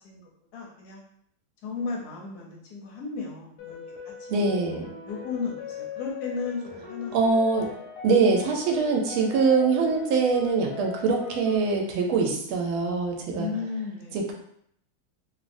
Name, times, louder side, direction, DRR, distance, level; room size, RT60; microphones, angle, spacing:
voice 1, 0.0-1.0 1.6-3.8 4.0-4.8 5.1-7.4 13.3-14.2, left 4 dB, 70° left, -2 dB, 0.9 m, -35 dB
sound 1, 3.6-11.6, left 6 dB, 90° left, 1.6 m, -40 dB
voice 2, 4.3-4.9 7.1-7.7 8.0-13.5, right 4 dB, 85° right, 1 dB, 1.4 m, -23 dB
3.5 x 2.0 x 2.5 m, 0.69 s
omnidirectional pair, 2.3 m